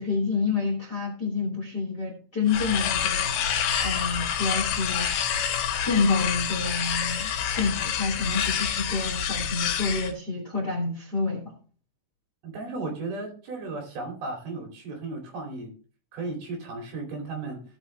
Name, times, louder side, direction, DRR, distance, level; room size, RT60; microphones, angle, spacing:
voice 1, 0.0-3.6 3.8-5.1 5.8-11.5, left 4 dB, 30° left, -1 dB, 2.3 m, -28 dB
sound 1, 2.5-10.1, left 8 dB, 70° left, 2.6 m, -27 dB
voice 2, 12.4-15.7 16.1-17.6, right 3 dB, 55° right, 1 dB, 4.3 m, -35 dB
17.5 x 6.2 x 3.3 m, 0.40 s
omnidirectional pair, 5.6 m